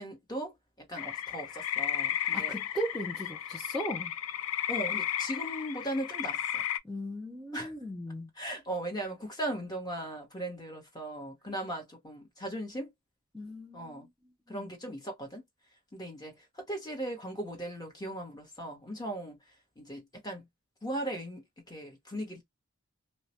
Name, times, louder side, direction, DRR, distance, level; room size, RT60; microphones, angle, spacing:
voice 1, 0.0-2.6 4.7-6.6 7.5-7.8 8.3-12.9 13.7-14.1 14.5-15.4 15.9-19.4 19.8-20.5 20.8-22.4, right 1 dB, 20° left, 0.8 m, -38 dB
sound 1, 1.0-6.8, left 10 dB, 80° left, 0.3 m, -34 dB
voice 2, 2.3-4.1 6.8-8.3 13.3-14.0 14.5-14.6, equal, ahead, 0.4 m, -37 dB
2.2 x 2.0 x 2.8 m
head